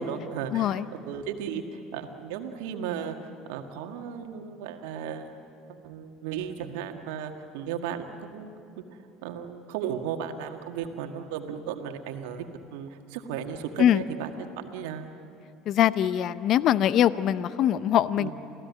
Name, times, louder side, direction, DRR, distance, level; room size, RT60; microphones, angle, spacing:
voice 1, 0.0-3.2 3.5-5.3 5.8-8.8 9.2-15.1 18.2-18.3, right 8 dB, 70° right, 5 dB, 1.8 m, -35 dB
voice 2, 0.5-0.8 13.8-14.0 15.7-18.3, left 11 dB, 55° left, 16 dB, 0.6 m, -22 dB
27.5 x 17.0 x 9.6 m, 2.7 s
hypercardioid pair, 70°, 0 cm